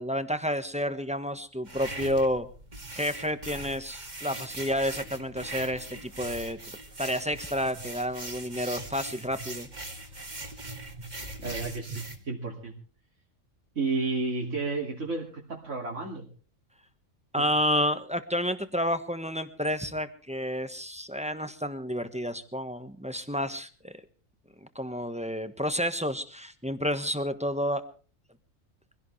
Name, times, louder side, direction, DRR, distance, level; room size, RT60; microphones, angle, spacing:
voice 1, 0.0-2.5 2.9-6.6 7.0-9.7 17.3-23.9 24.7-27.8, equal, 5° right, 9 dB, 1.2 m, -30 dB
sound 1, 1.6-12.2, right 2 dB, 35° right, 2.4 m, -40 dB
voice 2, 11.4-12.7 13.7-16.3 17.4-17.5, right 3 dB, 70° right, -3 dB, 3.0 m, -32 dB
24.0 x 17.0 x 3.3 m, 0.39 s
omnidirectional pair, 1.3 m